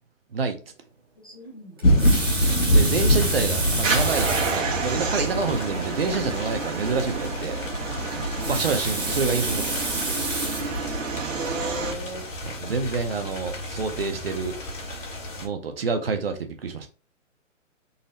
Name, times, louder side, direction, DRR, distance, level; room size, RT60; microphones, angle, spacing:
voice 1, 1.2-1.9 8.1-8.5 10.5-10.9 11.4-12.3, equal, 20° left, 0.5 m, -37 dB
sound 1, 1.8-15.5, equal, 75° left, 1.6 m, -27 dB
Water tap faucet, 1.8-4.7 5.5-5.6 5.9-6.0 8.2-10.8 11.4-11.7, right 2 dB, 20° right, 0.7 m, -30 dB
voice 2, 2.6-7.6 8.1-8.2 8.5-10.1 12.4-14.6 15.4-16.9, right 4 dB, 50° right, 0.6 m, -28 dB
sound 2, 3.8-11.9, right 4 dB, 75° right, 1.2 m, -30 dB
4.0 x 2.0 x 3.9 m
hypercardioid pair, 170°, 39 cm